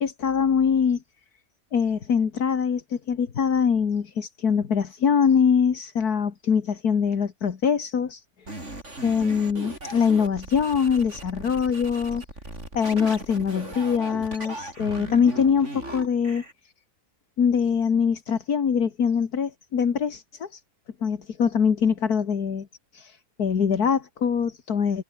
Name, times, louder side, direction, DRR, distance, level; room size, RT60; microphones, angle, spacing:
voice 1, 0.0-1.0 1.7-8.2 9.0-12.2 12.7-16.4 17.4-20.6 21.0-22.7 22.9-25.0, left 6 dB, 75° left, 2.2 m, -23 dB
sound 1, 8.5-16.5, right 2 dB, 45° right, 6.9 m, -38 dB
omnidirectional pair, 1.7 m